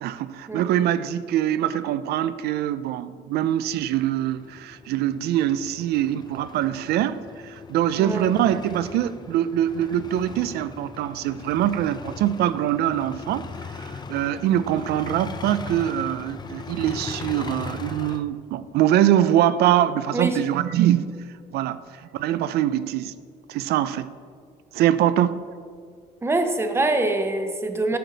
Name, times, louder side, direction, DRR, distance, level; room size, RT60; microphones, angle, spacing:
voice 1, 0.0-21.1 21.5-23.1 23.5-24.1 24.7-25.4, right 11 dB, 70° right, 14 dB, 0.4 m, -23 dB
sound 1, 3.6-18.2, left 5 dB, 25° left, 0.5 m, -39 dB
voice 2, 8.0-8.3 20.1-20.4 26.2-28.0, right 2 dB, 15° right, 6 dB, 0.8 m, -24 dB
10.0 x 6.5 x 4.0 m, 2.1 s
cardioid pair, 110°, 17 cm